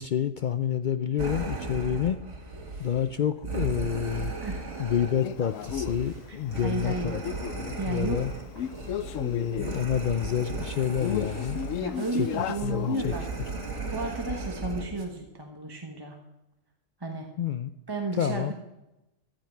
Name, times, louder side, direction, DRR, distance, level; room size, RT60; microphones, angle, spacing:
voice 1, 0.0-2.2 2.8-4.3 4.8-7.2 7.6-8.3 9.2-11.7 12.2-12.3 12.6-13.1 17.4-17.7 18.2-18.5, left 9 dB, 65° left, 10 dB, 0.4 m, -28 dB
sound 1, 1.2-15.0, right 3 dB, 65° right, 2.0 m, -36 dB
voice 2, 4.4-4.7 6.3-7.1 7.8-8.2 11.8-13.3 13.9-16.2 17.0-17.3 17.9-18.5, right 2 dB, 20° right, 2 dB, 1.1 m, -33 dB
Male speech man speaking, 5.2-13.7, left 10 dB, 85° left, 1.0 m, -36 dB
15.0 x 10.5 x 4.5 m, 0.94 s
omnidirectional pair, 1.3 m